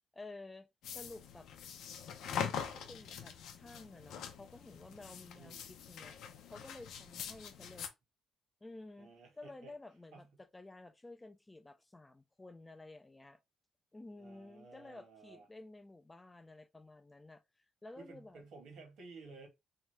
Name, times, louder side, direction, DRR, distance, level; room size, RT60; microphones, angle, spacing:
voice 1, 0.1-1.5 2.2-6.2 6.5-7.9 8.6-13.4 13.9-18.4, left 2 dB, 15° left, 0.4 m, -53 dB
sound 1, 0.8-7.9, left 7 dB, 80° left, 0.5 m, -43 dB
voice 2, 5.4-5.7 9.0-9.7 10.1-10.3 14.1-15.5 18.0-19.5, right 3 dB, 80° right, 1.3 m, -54 dB
2.8 x 2.3 x 3.1 m
cardioid pair, 90°, 0 cm